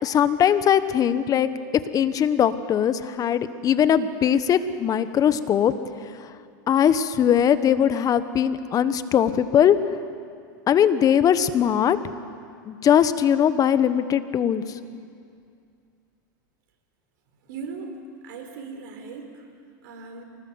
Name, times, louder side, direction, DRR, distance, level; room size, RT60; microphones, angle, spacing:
voice 1, 0.0-1.5 1.9-5.7 6.2-6.3 6.7-9.8 10.7-12.0 12.7-14.8, left 9 dB, 30° left, 13 dB, 1.2 m, -20 dB
voice 2, 17.5-17.9 18.2-19.4 19.8-20.2, right 5 dB, 65° right, 4 dB, 4.4 m, -38 dB
24.5 x 19.0 x 8.0 m, 2.3 s
hypercardioid pair, 110°, 11 cm